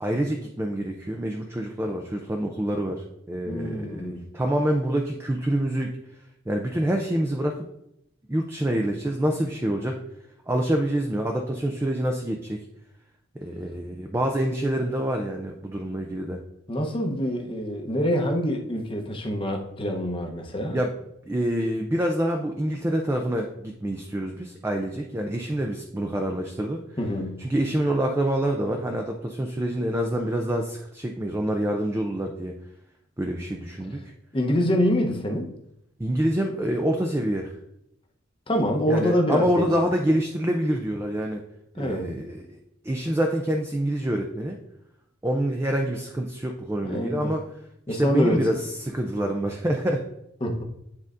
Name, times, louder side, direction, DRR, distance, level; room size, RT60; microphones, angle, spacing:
voice 1, 0.0-5.9 6.5-7.6 8.3-10.0 10.5-12.6 13.4-16.4 20.7-20.9 21.3-26.8 27.4-32.5 33.2-34.0 36.0-37.5 38.9-41.4 41.8-42.6 42.8-44.6 45.2-47.4 47.9-50.0, right 1 dB, 15° right, 2 dB, 0.4 m, -26 dB
voice 2, 3.5-4.3 16.7-20.8 27.0-27.4 34.3-35.5 38.5-39.7 41.8-42.2 46.8-47.3 47.9-48.6 50.4-50.6, equal, 25° left, 2 dB, 0.8 m, -26 dB
9.6 x 4.0 x 2.5 m, 0.80 s
head